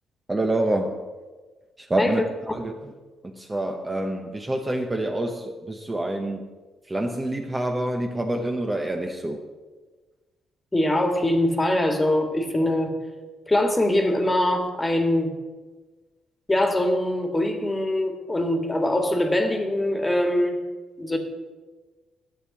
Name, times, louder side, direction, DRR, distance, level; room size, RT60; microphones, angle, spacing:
voice 1, 0.3-1.1 1.8-2.2 2.5-2.7 3.2-6.5 6.9-9.5, right 1 dB, 20° right, 3 dB, 0.9 m, -27 dB
voice 2, 10.7-12.9 13.5-15.3 16.5-20.6 21.0-21.2, left 1 dB, 15° left, 4 dB, 1.7 m, -23 dB
10.0 x 6.9 x 7.1 m, 1.3 s
cardioid pair, 90°, 0 cm